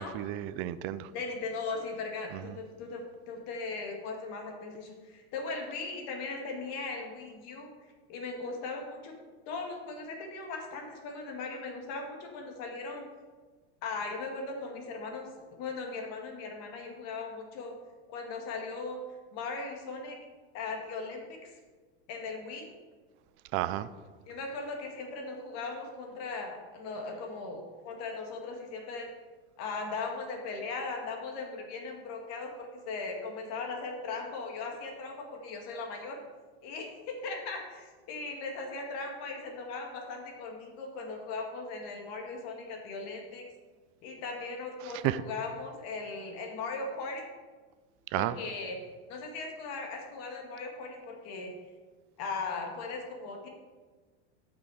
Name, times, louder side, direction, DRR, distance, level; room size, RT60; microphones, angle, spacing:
voice 1, 0.0-1.1 2.3-2.5 23.5-23.9 44.8-45.2 48.1-48.4, right 14 dB, 40° right, 14 dB, 0.5 m, -32 dB
voice 2, 1.1-7.7 8.1-9.2 9.5-13.1 13.8-17.7 18.1-19.0 19.3-20.2 20.5-21.5 22.1-22.7 24.3-29.1 29.6-36.2 36.6-43.5 44.0-47.3 48.1-48.8 49.1-51.5 52.2-53.5, left 3 dB, 50° left, 2 dB, 2.1 m, -38 dB
12.5 x 6.0 x 4.9 m, 1.4 s
supercardioid pair, 140°, 33 cm